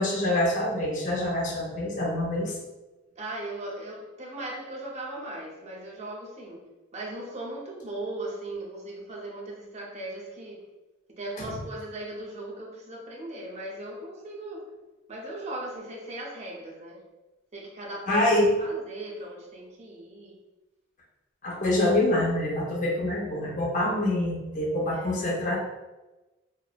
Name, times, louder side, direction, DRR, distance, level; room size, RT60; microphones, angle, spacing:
voice 1, 0.0-2.5 11.4-11.5 18.1-18.5 21.4-25.6, left 1 dB, 40° left, -2 dB, 0.6 m, -26 dB
voice 2, 3.2-10.7 11.1-14.7 15.1-17.0 17.5-18.3 18.6-20.4 24.9-25.2, right 1 dB, 35° right, -2 dB, 0.6 m, -38 dB
2.9 x 2.0 x 2.3 m, 1.1 s
head